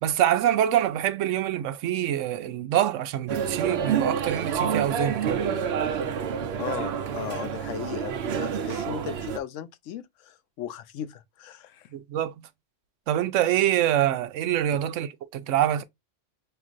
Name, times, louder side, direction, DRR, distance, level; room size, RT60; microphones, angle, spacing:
voice 1, 0.0-5.4 11.9-12.4 13.1-15.8, right 11 dB, 90° right, 0.9 m, -25 dB
sound 1, 3.3-9.4, right 7 dB, 65° right, 0.8 m, -28 dB
voice 2, 6.6-11.9 14.7-14.8, left 9 dB, 85° left, 1.0 m, -37 dB
5.7 x 2.5 x 2.4 m
omnidirectional pair, 1.2 m